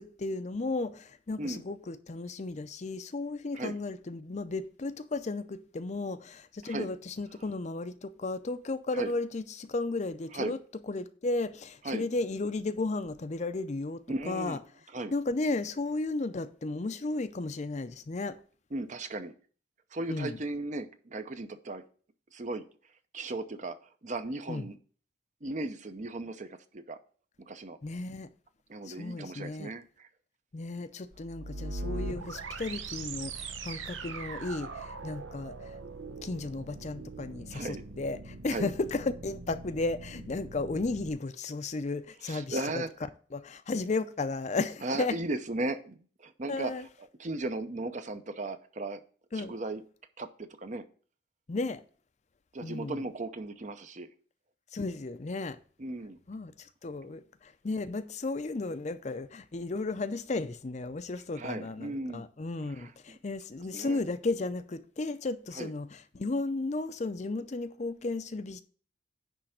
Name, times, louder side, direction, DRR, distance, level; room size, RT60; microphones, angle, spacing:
voice 1, 0.0-10.6 10.9-14.6 15.1-18.4 20.1-20.4 24.5-24.6 27.8-28.3 28.9-29.7 30.5-35.7 36.2-42.6 43.3-45.1 46.5-46.8 49.3-49.5 51.5-51.8 52.6-53.0 54.7-55.6 56.3-68.6, left 3 dB, 40° left, 0.5 m, -34 dB
voice 2, 14.1-14.6 14.9-15.1 18.7-19.3 19.9-21.8 22.3-22.7 23.1-23.8 24.0-24.8 25.4-27.0 27.4-27.8 28.7-30.1 37.5-37.8 38.5-38.7 42.2-42.9 44.8-49.0 49.3-49.8 50.2-50.8 52.5-54.1 55.8-56.2 57.0-57.1 61.4-62.3 62.7-63.2 63.7-64.0 65.5-65.7, right 2 dB, 40° right, 0.6 m, -36 dB
sound 1, 31.1-41.1, right 3 dB, 90° right, 0.9 m, -41 dB
10.0 x 3.4 x 6.4 m
head